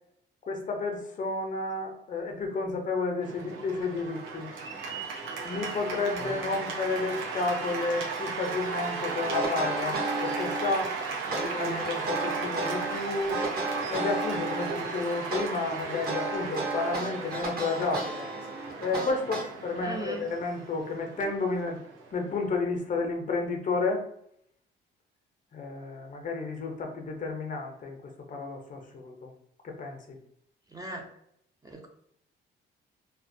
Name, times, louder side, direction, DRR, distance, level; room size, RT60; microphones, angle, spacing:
voice 1, 0.5-4.5 5.4-11.0 11.3-13.4 13.9-18.3 18.8-21.8 22.1-24.0 25.5-29.3 29.6-30.2, left 3 dB, 40° left, 3 dB, 0.5 m, -31 dB
Cheering / Applause, 3.2-22.5, right 4 dB, 85° right, 0.6 m, -36 dB
voice 2, 6.2-6.6 11.3-11.8 19.8-20.2 30.7-31.0 31.6-31.9, right 2 dB, 20° right, 2 dB, 0.5 m, -39 dB
sound 1, 9.3-10.9 11.3-12.9 13.3-14.9 15.3-19.8, right 3 dB, 50° right, 1.0 m, -33 dB
2.3 x 2.1 x 2.5 m, 0.73 s
cardioid pair, 90°, 20 cm